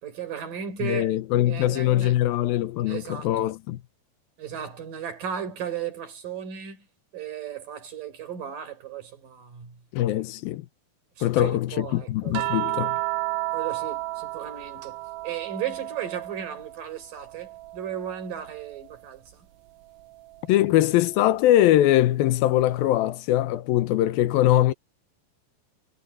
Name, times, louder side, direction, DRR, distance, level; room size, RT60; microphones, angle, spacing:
voice 1, 0.0-1.1 1.5-2.2 2.9-3.3 4.4-6.9 7.1-9.8 10.1-10.2 11.2-12.8 13.5-15.0 15.2-19.5, right 9 dB, 65° right, 5.8 m, -35 dB
voice 2, 0.8-3.8 9.9-10.7 11.2-13.0 20.5-24.7, left 14 dB, 85° left, 2.7 m, -22 dB
sound 1, 12.3-16.8 17.2-18.8 20.3-20.5, right 19 dB, 80° right, 2.4 m, -32 dB
omnidirectional pair, 4.2 m